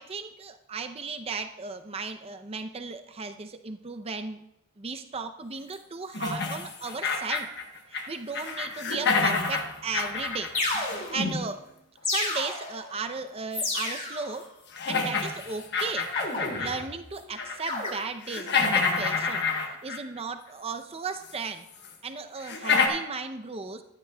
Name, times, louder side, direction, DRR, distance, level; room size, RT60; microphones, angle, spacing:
voice 1, 0.0-4.4 4.8-7.5 7.9-10.5 11.1-11.6 12.0-14.5 14.9-16.1 16.6-21.6 22.0-23.8, right 4 dB, 25° right, 8 dB, 0.5 m, -36 dB
sound 1, 6.1-8.1 8.3-11.4 13.5-13.6 14.2-14.3 14.7-16.8 17.2-17.7 18.0-20.2 21.3-21.4 21.8-21.9 22.4-22.9, left 4 dB, 50° left, 1.1 m, -28 dB
sound 2, 9.9-10.0 10.5-11.4 12.0-12.9 13.5-14.3 16.2-16.9 17.7-17.9, left 2 dB, 35° left, 2.4 m, -31 dB
14.5 x 10.5 x 2.3 m, 0.82 s
head